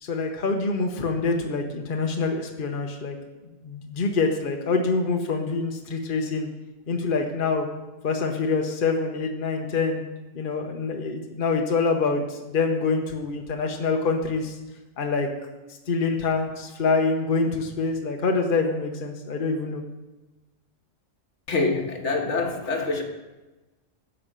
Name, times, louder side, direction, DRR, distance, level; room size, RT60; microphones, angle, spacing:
voice 1, 0.0-3.2 3.6-6.5 6.9-7.7 8.0-10.0 10.3-14.5 15.0-15.3 15.9-19.8, left 4 dB, 45° left, 2 dB, 1.1 m, -25 dB
voice 2, 21.5-23.0, left 3 dB, 70° left, 3 dB, 1.6 m, -25 dB
12.0 x 5.6 x 7.4 m, 1.1 s
omnidirectional pair, 1.3 m